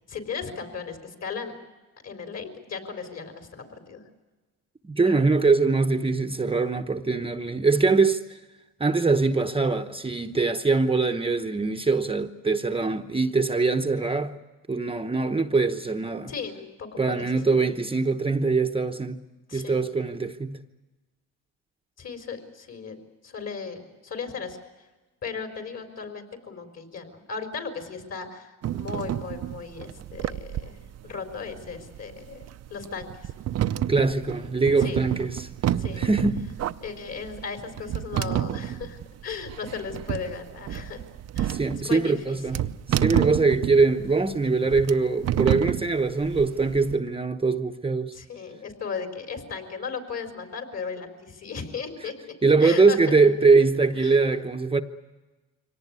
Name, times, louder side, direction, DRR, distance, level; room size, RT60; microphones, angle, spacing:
voice 1, 0.1-1.5 2.0-4.0 16.3-17.2 19.5-19.9 22.0-23.0 23.2-24.6 25.2-30.8 31.0-32.4 32.7-33.1 34.8-35.0 35.8-36.1 36.8-41.0 41.3-42.7 48.1-53.2 54.0-54.2, left 5 dB, 50° left, 4.3 m, -36 dB
voice 2, 4.8-8.4 8.8-14.3 14.7-16.3 17.0-19.2 19.5-20.6 33.9-35.5 36.0-36.5 41.5-42.6 42.9-48.1 52.4-54.8, right 4 dB, 15° right, 0.9 m, -22 dB
sound 1, 28.6-46.9, right 11 dB, 50° right, 0.7 m, -30 dB
24.5 x 18.0 x 9.6 m
cardioid pair, 90°, 34 cm